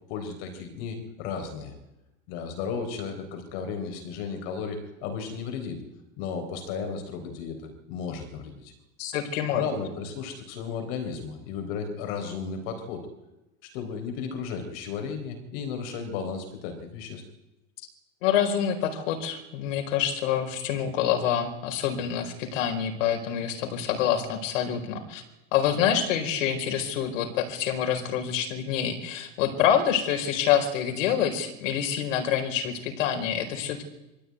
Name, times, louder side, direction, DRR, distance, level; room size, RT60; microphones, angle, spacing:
voice 1, 0.1-1.7 2.3-5.8 6.2-8.7 9.5-13.1 13.6-17.2, left 5 dB, 45° left, 6 dB, 4.0 m, -34 dB
voice 2, 9.0-9.6 18.2-25.2 25.5-33.9, left 9 dB, 60° left, 5 dB, 4.6 m, -26 dB
24.0 x 15.5 x 9.5 m, 0.99 s
supercardioid pair, 175°, 42 cm